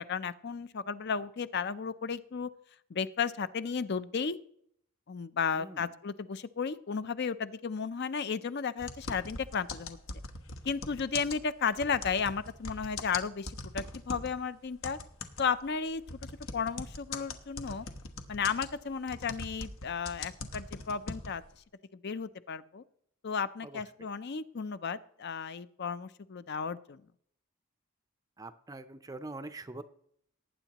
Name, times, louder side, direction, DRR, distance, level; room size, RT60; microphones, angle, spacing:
voice 1, 0.0-2.5 2.9-4.4 5.1-10.0 10.6-15.0 15.4-16.0 16.5-17.9 18.3-21.4 21.9-22.8 23.2-27.1, left 6 dB, 50° left, 14 dB, 0.5 m, -34 dB
voice 2, 5.5-5.9 23.6-24.1 28.4-29.8, right 2 dB, 15° right, 10 dB, 0.5 m, -44 dB
sound 1, 8.8-14.4 14.8-21.5, left 3 dB, 65° left, 1.1 m, -41 dB
19.0 x 9.1 x 2.9 m, 0.68 s
head